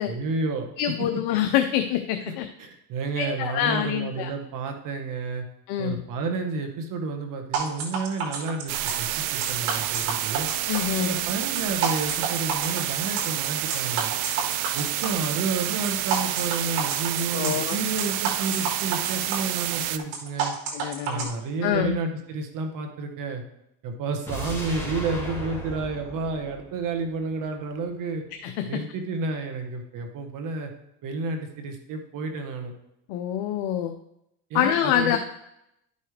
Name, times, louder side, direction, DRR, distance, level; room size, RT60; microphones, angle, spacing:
voice 1, 0.0-0.7 1.1-1.2 2.3-2.4 2.6-5.4 5.8-10.5 11.0-14.1 14.7-20.5 21.0-23.4 23.8-28.2 28.6-30.7 31.0-32.7 34.5-35.2, right 3 dB, 50° right, 4 dB, 1.5 m, -30 dB
voice 2, 0.8-2.5 3.2-4.3 5.7-6.0 10.7-11.1 17.3-17.8 20.7-21.3 21.6-22.0 28.4-28.8 33.1-33.9 34.5-35.2, left 10 dB, 60° left, 6 dB, 0.8 m, -26 dB
sound 1, 7.5-21.2, right 5 dB, 70° right, 2.1 m, -30 dB
sound 2, 8.7-20.0, right 13 dB, 90° right, 0.7 m, -29 dB
sound 3, 24.3-27.4 27.7-27.8, equal, 5° left, 2.9 m, -36 dB
12.0 x 5.5 x 3.3 m, 0.80 s
supercardioid pair, 110°, 41 cm